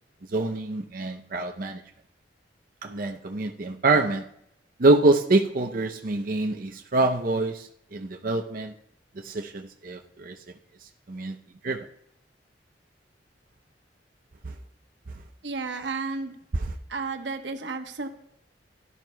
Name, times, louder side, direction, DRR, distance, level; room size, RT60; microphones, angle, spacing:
voice 1, 0.3-1.8 2.8-4.2 4.8-8.7 9.2-10.4 10.8-11.4 11.6-11.8 14.4-14.5, right 2 dB, 55° right, 2 dB, 0.6 m, -25 dB
voice 2, 15.4-16.4 16.9-18.1, right 4 dB, 80° right, 5 dB, 1.1 m, -32 dB
16.5 x 11.0 x 2.2 m, 0.75 s
head